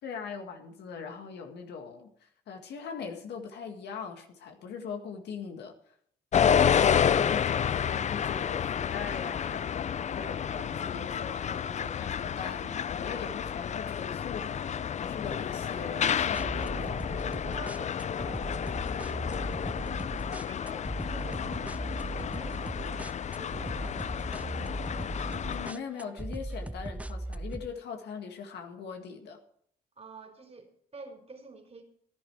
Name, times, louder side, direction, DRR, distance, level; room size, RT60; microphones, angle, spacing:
voice 1, 0.0-5.9 7.0-14.6 14.9-17.1 25.4-29.4, left 6 dB, 75° left, 4 dB, 2.0 m, -41 dB
sound 1, 6.3-25.7, left 8 dB, 40° left, 0.4 m, -30 dB
voice 2, 6.6-7.5 17.5-20.1 20.5-24.8 30.0-31.8, right 3 dB, 35° right, 2 dB, 3.7 m, -50 dB
sound 2, 16.3-27.7, right 1 dB, 10° right, 0.6 m, -38 dB
14.5 x 11.0 x 4.8 m, 0.63 s
supercardioid pair, 55°, 18 cm